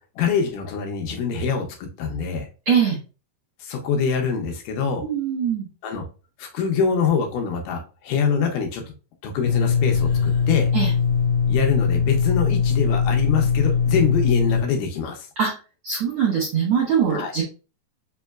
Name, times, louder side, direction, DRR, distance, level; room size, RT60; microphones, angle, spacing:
voice 1, 0.2-2.5 3.6-5.0 5.8-6.0 6.4-8.9 9.2-10.7 11.5-15.3 17.1-17.3, left 6 dB, 75° left, 3 dB, 2.2 m, -24 dB
voice 2, 2.6-3.0 5.0-5.7 10.7-10.9 15.4-15.5 15.8-17.4, right 7 dB, 60° right, -3 dB, 1.4 m, -22 dB
sound 1, 9.4-14.6, left 6 dB, 60° left, 1.9 m, -21 dB
5.4 x 3.0 x 2.3 m, 0.33 s
omnidirectional pair, 4.0 m